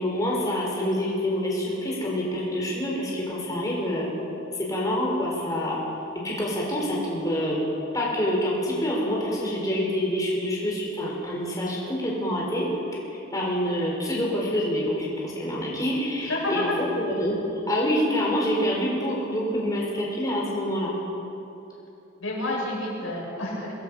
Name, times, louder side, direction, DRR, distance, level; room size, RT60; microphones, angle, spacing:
voice 1, 0.0-4.1 4.5-5.8 6.2-7.6 7.9-12.7 13.3-16.8 17.2-17.4 17.7-20.9, equal, 20° left, -4 dB, 4.9 m, -26 dB
voice 2, 16.2-16.8 22.2-23.7, left 2 dB, 85° left, -4 dB, 7.1 m, -29 dB
24.0 x 21.0 x 5.7 m, 2.9 s
head